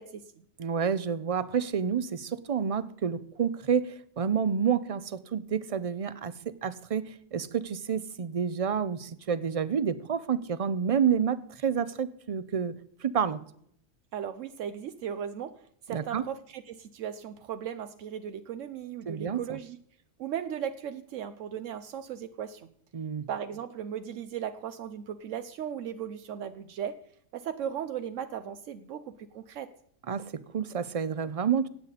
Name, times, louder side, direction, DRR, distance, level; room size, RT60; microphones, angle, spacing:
voice 1, 0.0-0.4 14.1-19.8 20.2-22.7 23.3-27.0 27.3-29.7, right 9 dB, 80° right, 10 dB, 1.0 m, -37 dB
voice 2, 0.6-12.8 13.0-13.4 15.9-16.2 19.1-19.6 22.9-23.3 30.1-31.7, right 7 dB, 45° right, 15 dB, 0.4 m, -29 dB
17.0 x 8.3 x 4.1 m, 0.68 s
omnidirectional pair, 1.3 m